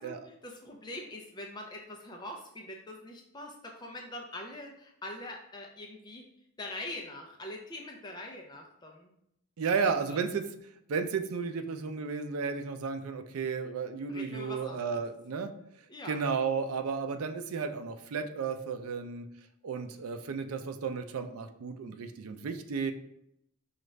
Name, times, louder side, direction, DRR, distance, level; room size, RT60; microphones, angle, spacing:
voice 1, 0.0-6.3 6.6-9.1 9.6-10.2 14.1-15.0 15.9-16.2, left 1 dB, 20° left, 1 dB, 0.4 m, -43 dB
voice 2, 9.6-10.4 10.9-15.5 16.1-19.3 19.6-22.9, right 5 dB, 90° right, 8 dB, 0.4 m, -33 dB
5.0 x 2.4 x 3.2 m, 0.75 s
head